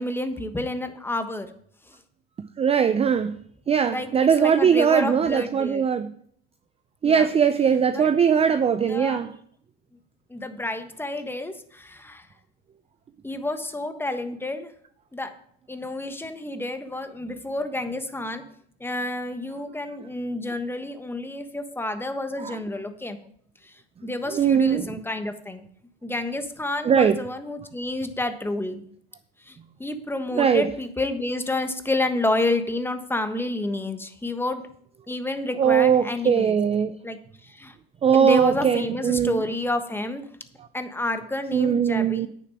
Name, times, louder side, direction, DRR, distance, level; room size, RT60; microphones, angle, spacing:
voice 1, 0.0-1.5 3.9-4.1 4.4-5.8 7.0-7.3 7.9-8.1 8.7-9.3 10.3-12.3 13.2-14.7 15.1-15.3 15.7-18.4 18.8-23.2 23.6-23.7 24.0-25.6 26.0-28.8 29.5-34.6 35.1-36.6 37.0-37.2 37.4-37.7 38.1-40.2 40.7-42.3, left 2 dB, 5° left, 1.3 m, -29 dB
voice 2, 2.6-3.4 3.7-6.1 7.0-9.3 22.4-22.6 24.3-25.0 26.8-27.1 30.3-30.7 35.6-36.9 38.0-39.4 41.5-42.3, right 7 dB, 20° right, 0.5 m, -20 dB
9.3 x 6.8 x 6.2 m
hypercardioid pair, 95°, 32 cm